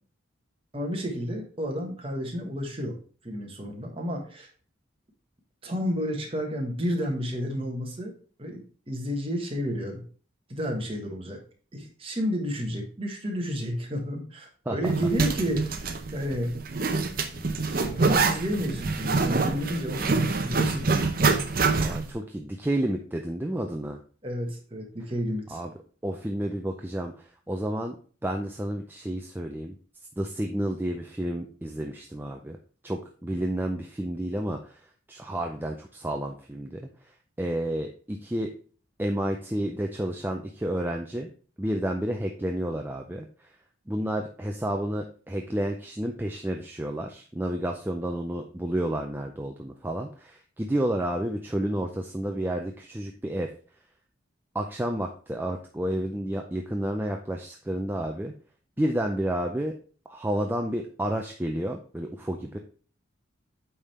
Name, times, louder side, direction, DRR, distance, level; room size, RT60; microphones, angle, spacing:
voice 1, 0.7-3.0 3.2-4.5 5.6-8.1 8.4-10.0 10.5-11.4 11.7-16.5 17.4-20.9 24.2-25.6, equal, 25° right, 1 dB, 1.4 m, -31 dB
Zipper (clothing), 14.8-22.1, right 4 dB, 45° right, 0.7 m, -26 dB
voice 2, 21.8-24.0 25.5-25.7 26.0-28.0 28.2-29.8 30.2-32.6 32.8-38.5 39.0-41.3 41.6-43.5 43.9-53.5 54.5-58.3 58.8-59.8 60.1-62.6, right 1 dB, 10° right, 2 dB, 0.4 m, -30 dB
8.6 x 3.6 x 4.2 m, 0.41 s
head